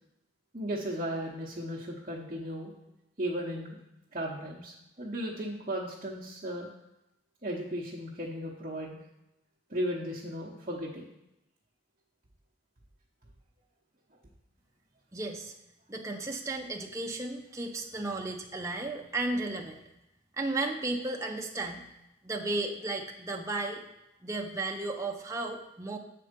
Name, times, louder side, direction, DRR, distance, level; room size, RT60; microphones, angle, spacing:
voice 1, 0.5-2.7 3.2-3.8 4.1-6.7 7.4-9.0 9.7-11.1, equal, 30° right, -6 dB, 0.9 m, -35 dB
voice 2, 15.1-15.5 15.9-19.8 20.4-21.8 22.2-23.8 24.2-26.0, right 2 dB, 15° right, 1 dB, 0.5 m, -34 dB
7.6 x 4.4 x 5.1 m, 0.92 s
head